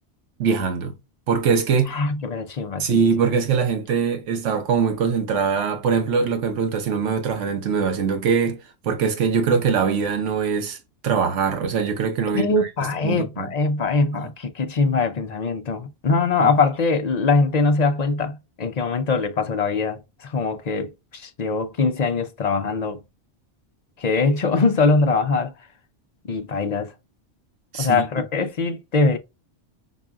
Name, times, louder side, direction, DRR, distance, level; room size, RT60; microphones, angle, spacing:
voice 1, 0.4-0.9 1.3-2.0 2.8-10.8 11.0-12.7 13.0-13.5 14.1-14.3 16.4-16.5 27.7-28.1, right 6 dB, 85° right, 1.2 m, -22 dB
voice 2, 1.9-3.1 12.3-23.0 24.0-25.5 26.3-26.9 27.8-29.2, left 4 dB, 50° left, 0.5 m, -22 dB
6.0 x 2.3 x 2.3 m
omnidirectional pair, 1.2 m